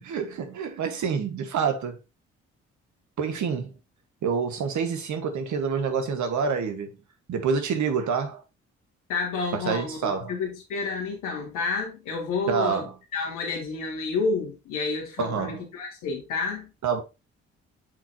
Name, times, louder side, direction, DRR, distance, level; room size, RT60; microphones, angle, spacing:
voice 1, 0.0-2.0 3.2-3.7 4.2-7.0 7.3-8.4 9.5-10.3 12.5-12.9 15.2-15.7 16.8-17.0, right 6 dB, 60° right, 1.7 m, -27 dB
voice 2, 9.1-16.7, left 4 dB, 75° left, 2.8 m, -30 dB
8.4 x 4.9 x 2.9 m
hypercardioid pair, 50°, 32 cm